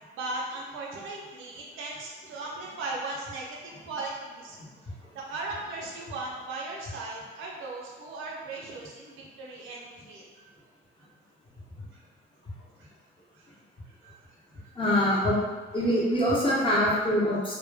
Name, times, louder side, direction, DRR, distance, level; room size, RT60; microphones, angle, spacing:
voice 1, 0.1-4.6 4.8-10.5 11.9-12.0 12.8-12.9 13.3-13.6 13.9-14.7, right 2 dB, 90° right, -3 dB, 0.6 m, -38 dB
voice 2, 14.8-15.4 15.7-17.5, equal, 25° left, -7 dB, 0.9 m, -24 dB
2.2 x 2.1 x 3.3 m, 1.3 s
cardioid pair, 90°, 20 cm